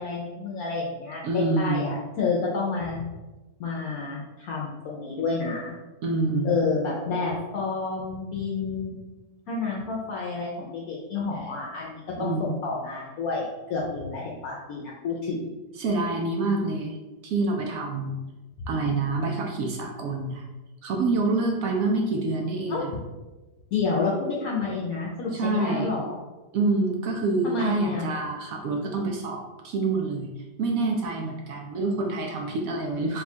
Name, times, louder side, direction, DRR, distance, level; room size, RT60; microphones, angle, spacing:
voice 1, 0.0-3.1 3.6-5.8 6.4-9.0 9.5-15.5 18.6-18.7 22.7-22.9 23.7-26.2 27.4-28.1, left 4 dB, 65° left, -3 dB, 1.0 m, -29 dB
voice 2, 1.2-2.0 6.0-6.6 12.2-12.6 15.8-17.0 17.2-18.2 18.7-20.4 20.8-22.9 25.3-25.9 26.5-30.3 30.6-33.2, right 3 dB, 70° right, 1 dB, 0.9 m, -27 dB
3.7 x 2.3 x 4.2 m, 1.1 s
omnidirectional pair, 1.8 m